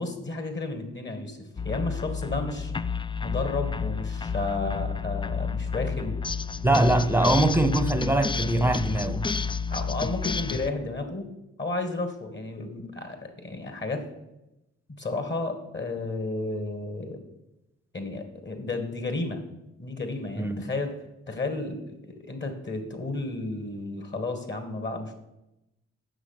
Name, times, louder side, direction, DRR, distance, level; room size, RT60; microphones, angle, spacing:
voice 1, 0.0-2.7 3.2-6.2 6.8-6.9 9.7-11.3 11.6-14.0 15.0-17.2 17.9-19.4 19.8-20.9 21.3-25.2, left 2 dB, 35° left, 2.0 m, -32 dB
sound 1, 1.6-10.7, left 5 dB, 15° left, 0.4 m, -30 dB
voice 2, 6.6-9.3 20.4-20.6, right 2 dB, 10° right, 0.9 m, -23 dB
8.1 x 6.3 x 6.0 m
supercardioid pair, 50°, 30 cm